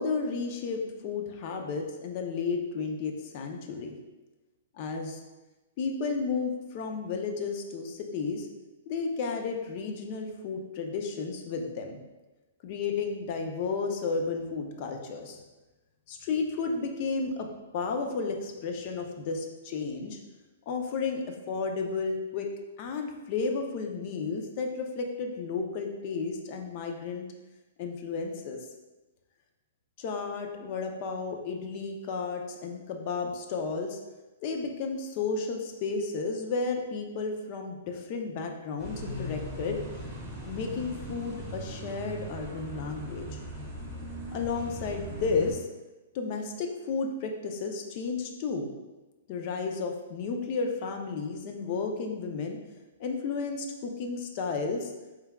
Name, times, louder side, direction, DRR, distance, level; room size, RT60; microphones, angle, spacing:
voice 1, 0.0-3.9 4.8-5.2 5.8-8.5 8.9-12.0 12.6-15.4 16.1-17.5 17.7-20.2 20.7-22.5 22.8-27.3 27.8-28.6 30.0-34.0 34.4-39.8 40.4-43.4 44.3-45.7 46.1-48.7 49.3-52.6 53.0-54.9, left 4 dB, 35° left, 3 dB, 0.5 m, -32 dB
sound 1, 38.8-45.5, right 1 dB, 10° right, 1.1 m, -39 dB
4.5 x 3.4 x 2.2 m, 1.1 s
hypercardioid pair, 165°, 0 cm